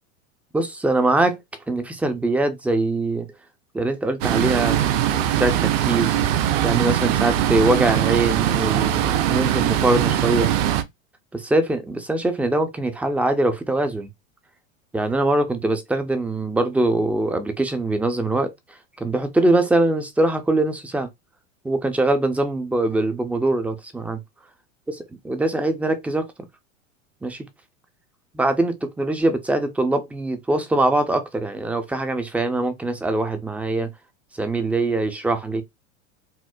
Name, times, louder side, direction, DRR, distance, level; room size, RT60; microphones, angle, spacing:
voice 1, 0.5-1.4 1.7-3.3 3.7-6.2 6.6-10.5 11.3-14.1 14.9-21.1 21.6-24.2 25.2-26.3 27.2-27.5 28.3-33.9 34.3-35.6, right 2 dB, 5° right, 0.4 m, -22 dB
sound 1, 4.2-10.8, right 11 dB, 50° right, 0.6 m, -21 dB
4.3 x 2.1 x 2.3 m
hypercardioid pair, 105°, 39 cm